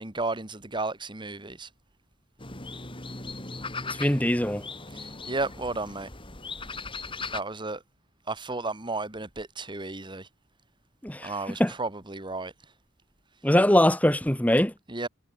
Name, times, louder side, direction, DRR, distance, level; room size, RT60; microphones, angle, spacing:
voice 1, 0.0-1.7 4.9-6.1 7.3-7.8 8.3-10.3 11.2-12.5 14.9-15.1, right 3 dB, 25° right, 2.1 m, -33 dB
sound 1, 2.4-7.4, left 3 dB, 25° left, 6.6 m, -38 dB
voice 2, 4.0-4.6 11.0-11.3 11.6-11.7 13.4-14.7, left 1 dB, 10° left, 1.5 m, -22 dB
head